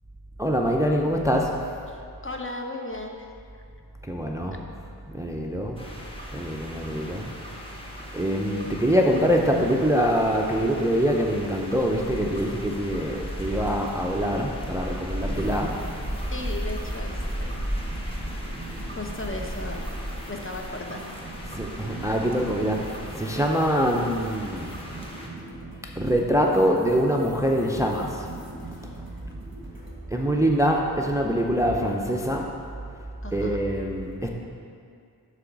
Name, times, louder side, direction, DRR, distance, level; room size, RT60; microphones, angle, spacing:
voice 1, 0.4-1.6 4.1-4.6 5.1-5.8 6.3-7.3 8.1-15.8 16.2-16.4 21.5-24.7 26.0-28.3 28.7-28.9 30.1-32.5 33.3-34.3, equal, 10° right, 1 dB, 0.5 m, -24 dB
voice 2, 1.9-3.3 16.3-17.7 18.9-20.0 20.3-21.3 33.2-33.6, left 2 dB, 30° left, 1 dB, 0.6 m, -36 dB
sound 1, 5.8-25.3, equal, 15° left, 1.1 m, -35 dB
sound 2, 15.2-30.0, right 3 dB, 30° right, 1.2 m, -43 dB
7.7 x 3.4 x 6.0 m, 2.3 s
wide cardioid pair, 45°, 40 cm